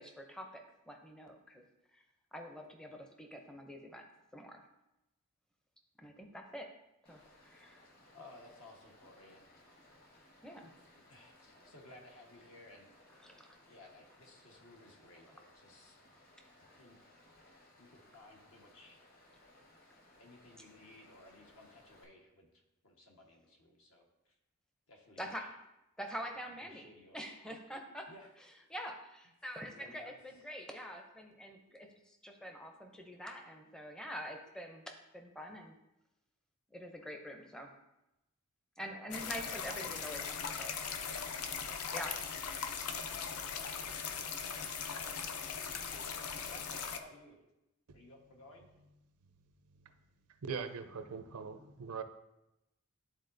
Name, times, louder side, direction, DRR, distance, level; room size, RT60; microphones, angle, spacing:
voice 1, 0.0-1.6 1.9-2.0 2.3-4.1 4.3-4.6 6.0-6.7 7.1-7.8 10.4-10.7 13.2-13.6 25.2-25.5 26.0-26.9 27.1-28.1 28.7-35.7 36.7-37.7 38.8-40.7 41.9-42.1, equal, 5° left, 0.5 m, -45 dB
Stream, 7.0-22.0, left 1 dB, 40° left, 1.3 m, -63 dB
voice 2, 8.1-9.5 10.6-10.7 11.1-12.9 13.6-16.0 16.5-17.1 17.8-19.0 20.2-24.3 24.9-25.5 26.6-27.2 28.1-28.3 29.8-30.2 38.8-39.3 39.7-41.2 41.6-42.4 42.9-44.6 45.7-46.2 46.4-47.4 47.9-48.7, left 2 dB, 70° left, 1.2 m, -58 dB
sound 1, 39.1-47.0, left 6 dB, 90° left, 0.5 m, -39 dB
voice 3, 50.5-52.0, right 5 dB, 90° right, 0.6 m, -41 dB
11.5 x 3.9 x 2.6 m
head